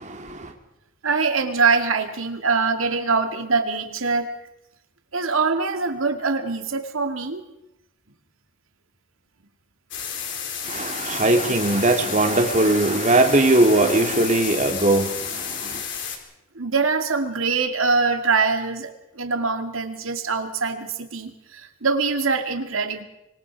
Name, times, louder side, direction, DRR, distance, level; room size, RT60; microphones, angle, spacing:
voice 1, 1.0-4.3 5.1-7.4 16.5-23.0, right 4 dB, 85° right, 2.4 m, -23 dB
sound 1, 9.9-16.2, left 7 dB, 65° left, 3.9 m, -31 dB
voice 2, 10.7-15.1, right 2 dB, 35° right, 2.8 m, -19 dB
25.5 x 24.0 x 4.8 m
head